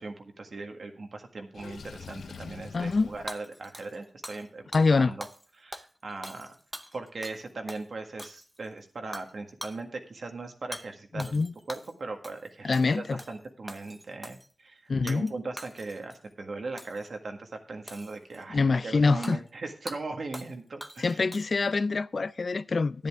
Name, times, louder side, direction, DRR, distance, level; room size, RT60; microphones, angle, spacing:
voice 1, 0.0-4.7 5.0-5.3 5.6-6.5 6.9-11.4 11.7-21.2, right 3 dB, 55° right, 1.7 m, -39 dB
Water / Sink (filling or washing), 1.5-3.3, left 5 dB, 90° left, 0.7 m, -44 dB
voice 2, 2.7-3.1 4.7-5.2 11.1-11.5 12.6-13.2 14.9-15.3 18.5-19.4 21.0-23.1, left 4 dB, 50° left, 0.4 m, -25 dB
Hammer / Shatter, 3.3-4.5 4.7-4.9 5.2-5.5 5.7-7.4 7.7-7.8 8.2-8.7 9.1-9.3 9.6-9.8 10.7-10.9 11.2-11.9 12.2-12.5 12.7-13.4 13.7-14.5 15.1-15.3 15.6-16.2 16.8-17.1 17.9-18.4 19.2-19.4 19.9-20.0 20.3-20.5 20.8-21.7, equal, 5° right, 0.8 m, -43 dB
10.5 x 10.5 x 3.5 m
wide cardioid pair, 100°, 0 cm